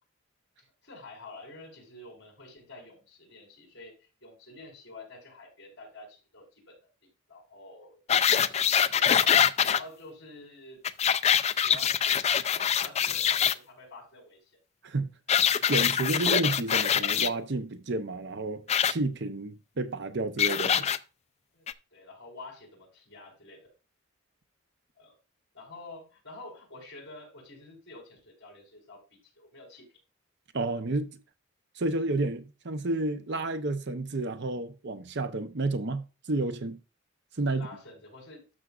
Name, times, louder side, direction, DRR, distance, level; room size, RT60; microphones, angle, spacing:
voice 1, 0.8-6.7 7.3-8.0 8.3-10.8 11.6-14.6 21.5-23.7 24.9-25.1 25.5-29.8 37.4-38.4, left 2 dB, 55° left, 4.6 m, -48 dB
sound 1, 8.1-9.8 10.8-13.5 15.3-17.3 18.7-18.9 20.4-21.0 21.7-21.8, left 8 dB, 30° left, 0.3 m, -24 dB
voice 2, 15.7-20.9 30.5-31.2 31.8-36.0 36.3-36.8 37.4-37.7, right 2 dB, 55° right, 0.7 m, -30 dB
12.5 x 6.1 x 2.5 m
head